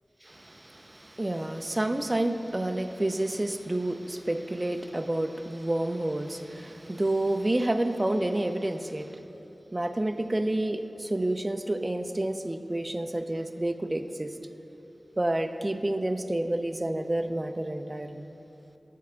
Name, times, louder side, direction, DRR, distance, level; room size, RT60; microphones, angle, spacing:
voice 1, 0.2-9.2 9.7-14.3 15.2-18.2, right 1 dB, 30° right, 8 dB, 0.5 m, -29 dB
12.0 x 4.6 x 6.2 m, 2.9 s
wide cardioid pair, 60°, 0 cm